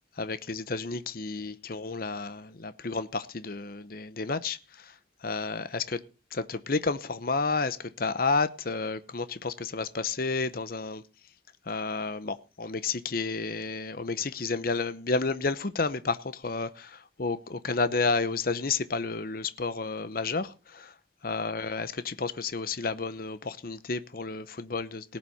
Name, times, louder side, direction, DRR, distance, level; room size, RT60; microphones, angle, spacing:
voice 1, 0.2-6.0 6.3-11.0 11.7-20.9 21.2-25.2, left 4 dB, 50° left, 0.8 m, -31 dB
18.5 x 7.6 x 5.6 m
head